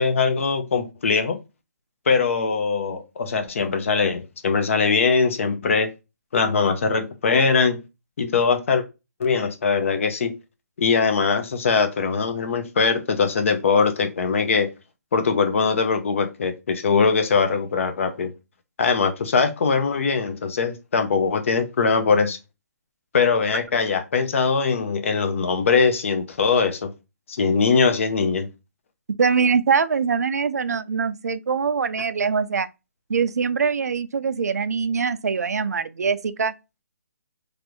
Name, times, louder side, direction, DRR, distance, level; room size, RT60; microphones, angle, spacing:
voice 1, 0.0-1.4 2.1-5.9 6.3-7.8 8.2-8.8 9.2-10.3 10.8-14.7 15.1-18.3 18.8-22.4 23.1-26.9 27.3-28.5, left 5 dB, 55° left, 0.7 m, -21 dB
voice 2, 29.2-32.7 33.1-36.5, right 5 dB, 85° right, 0.4 m, -23 dB
3.2 x 2.5 x 2.9 m
hypercardioid pair, 160°, 9 cm